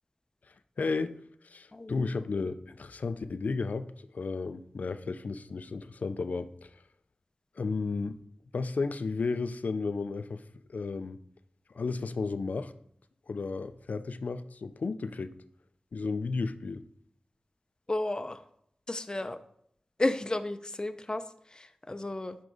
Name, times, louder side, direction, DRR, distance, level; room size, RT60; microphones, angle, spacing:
voice 1, 0.5-1.2 1.4-3.9 4.1-6.7 7.6-8.2 8.5-10.4 10.7-11.2 11.7-12.7 13.3-15.4 15.9-16.8, left 4 dB, 75° left, 0.5 m, -33 dB
voice 2, 1.7-2.1 17.9-18.4 18.9-19.4 20.0-22.4, left 2 dB, 30° left, 0.6 m, -33 dB
11.0 x 4.7 x 4.0 m
cardioid pair, 50°, 3 cm